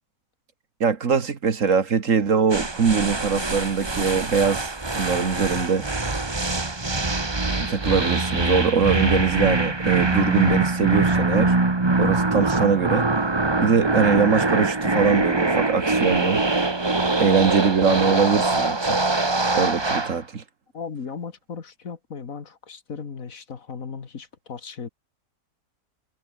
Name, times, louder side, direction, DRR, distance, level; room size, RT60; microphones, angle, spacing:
voice 1, 0.8-5.9 7.6-11.6 12.0-13.1 13.6-16.4 17.2-19.0 19.6-20.4, right 6 dB, 60° right, 1.9 m, -22 dB
sound 1, 2.5-20.2, right 2 dB, 20° right, 1.3 m, -23 dB
voice 2, 20.7-24.9, left 5 dB, 65° left, 2.2 m, -36 dB
omnidirectional pair, 1.5 m